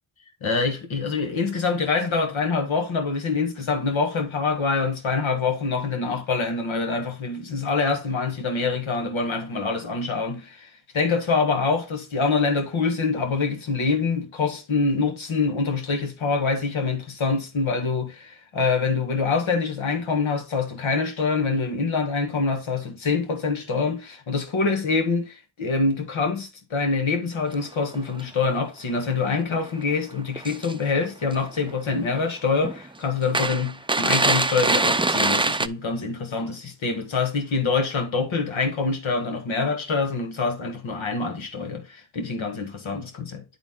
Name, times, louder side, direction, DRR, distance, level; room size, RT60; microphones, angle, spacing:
voice 1, 0.4-43.4, left 4 dB, 85° left, 1.4 m, -25 dB
sound 1, 27.5-27.6 27.9-28.2 29.0-29.1 29.6-29.7 30.4-31.0 31.3-31.8 32.1-32.2 32.6-32.8 33.3-35.7, right 3 dB, 10° right, 0.4 m, -23 dB
9.9 x 4.0 x 3.6 m
cardioid pair, 55°, 46 cm